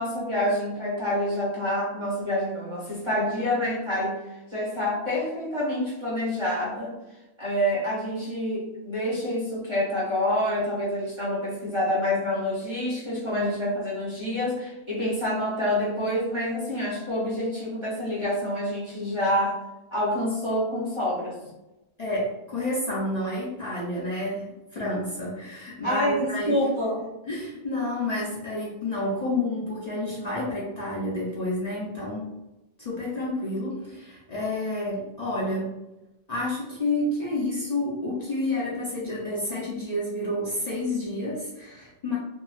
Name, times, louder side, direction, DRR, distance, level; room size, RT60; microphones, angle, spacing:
voice 1, 0.0-4.2 4.5-7.0 7.4-19.6 19.9-21.4 25.8-27.0, left 1 dB, 30° right, -6 dB, 0.7 m, -27 dB
voice 2, 22.0-26.6 27.3-32.3 32.8-35.8 36.3-42.2, left 1 dB, 45° left, -6 dB, 0.6 m, -29 dB
2.9 x 2.3 x 2.3 m, 0.98 s
omnidirectional pair, 1.1 m